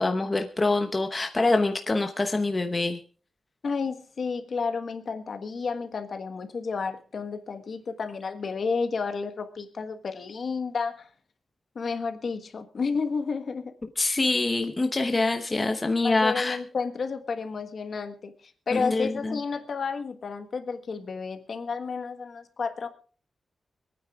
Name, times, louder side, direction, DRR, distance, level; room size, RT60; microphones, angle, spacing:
voice 1, 0.0-3.0 14.0-16.6 18.7-19.4, left 3 dB, 20° left, 5 dB, 0.9 m, -25 dB
voice 2, 3.6-11.1 11.7-13.7 16.0-22.9, left 5 dB, 50° left, 8 dB, 1.4 m, -31 dB
25.5 x 9.4 x 3.6 m, 0.42 s
wide cardioid pair, 165°, 0 cm